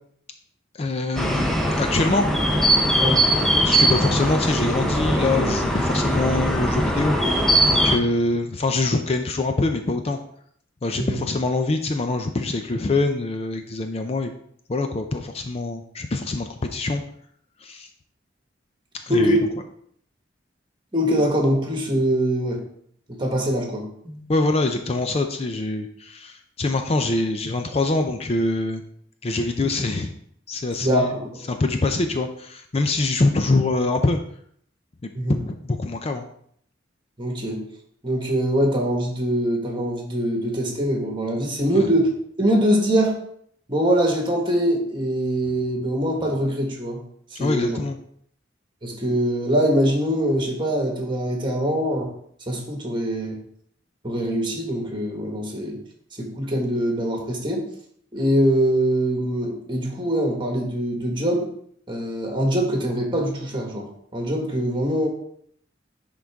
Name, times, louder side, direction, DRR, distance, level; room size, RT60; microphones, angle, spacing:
voice 1, 0.7-2.3 3.6-10.2 10.8-14.3 14.7-17.0 17.6-17.9 19.1-19.4 24.3-28.8 29.2-30.1 30.5-31.1 31.5-34.2 35.5-36.2 41.8-41.9 47.4-48.0, left 2 dB, 35° left, 6 dB, 0.5 m, -24 dB
sound 1, 1.2-8.0, equal, ahead, 0.7 m, -21 dB
voice 2, 19.1-19.4 20.9-22.6 23.1-24.3 30.8-31.5 35.1-35.4 37.2-37.6 38.0-42.1 42.4-43.2 43.7-47.0 47.3-47.8 48.8-52.1 52.5-53.4 54.0-55.8 56.2-57.7 58.1-61.5 61.9-65.1, equal, 25° right, 0 dB, 1.6 m, -23 dB
10.5 x 3.9 x 3.5 m, 0.66 s
head